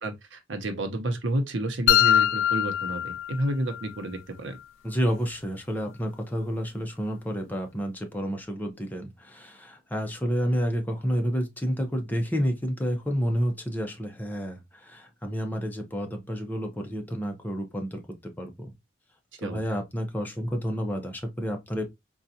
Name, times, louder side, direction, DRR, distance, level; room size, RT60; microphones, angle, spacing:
voice 1, 0.0-4.6 19.4-19.6, right 1 dB, 75° right, 0.7 m, -30 dB
sound 1, 1.9-3.9, left 11 dB, 85° left, 0.3 m, -23 dB
voice 2, 4.8-18.0 18.4-18.7 19.4-21.8, equal, 10° left, 0.7 m, -30 dB
3.9 x 2.3 x 2.6 m
head